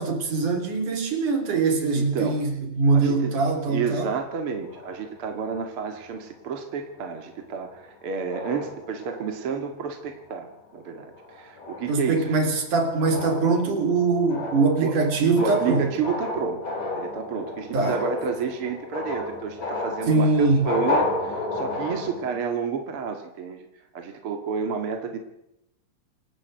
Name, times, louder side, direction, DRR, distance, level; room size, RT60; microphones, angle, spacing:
voice 1, 0.0-4.1 11.9-15.9 17.7-18.0 20.1-20.7, right 3 dB, 65° right, 5 dB, 5.1 m, -22 dB
voice 2, 1.9-2.4 2.9-3.3 3.7-10.5 10.7-12.4 14.8-15.0 15.3-16.6 17.0-23.7 23.9-25.2, right 6 dB, 45° right, 5 dB, 2.5 m, -30 dB
sound 1, 4.5-6.3 7.0-7.2 7.6-7.9 8.3-9.6 10.1-10.4 10.8-22.4, left 2 dB, 65° left, 6.1 m, -33 dB
27.5 x 14.5 x 8.1 m, 0.83 s
omnidirectional pair, 3.9 m